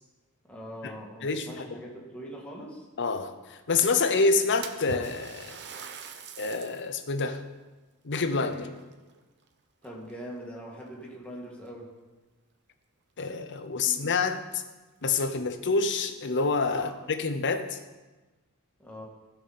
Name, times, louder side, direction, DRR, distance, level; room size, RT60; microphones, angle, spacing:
voice 1, 0.5-2.9 8.5-8.7 9.8-11.9 13.8-14.0 16.7-17.0 18.8-19.0, equal, 5° left, -3 dB, 1.9 m, -42 dB
voice 2, 1.2-1.8 3.0-5.6 6.4-7.4 8.0-8.7 13.2-14.6 15.0-17.8, left 4 dB, 55° left, 9 dB, 0.8 m, -27 dB
Splash splatter, 4.6-6.9 7.4-7.5 8.4-9.5 9.8-10.3 11.1-11.2 11.7-11.8 13.9-14.0 14.3-14.4 15.0-15.1 15.5-15.6 16.3-16.9, right 5 dB, 50° right, 0.8 m, -43 dB
15.5 x 5.8 x 4.3 m, 1.2 s
head